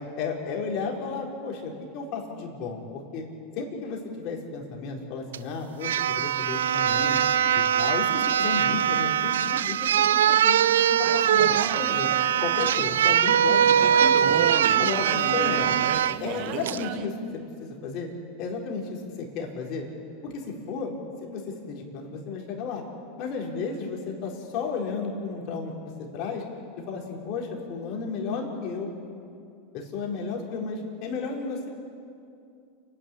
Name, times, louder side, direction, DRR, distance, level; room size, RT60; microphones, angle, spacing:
voice 1, 0.2-3.3 3.6-7.2 7.5-12.1 12.4-14.4 14.8-15.7 16.2-18.1 18.4-19.9 20.2-20.9 21.2-22.8 23.2-26.4 26.9-28.9 29.7-31.7, left 4 dB, 55° left, 0 dB, 4.5 m, -33 dB
sound 1, 5.3-5.4 5.8-16.2 16.7-16.8, right 9 dB, 80° right, 0.4 m, -22 dB
sound 2, 11.0-17.1, right 10 dB, 55° right, 1.3 m, -34 dB
29.5 x 11.0 x 8.5 m, 2.5 s
hypercardioid pair, 95°, 0 cm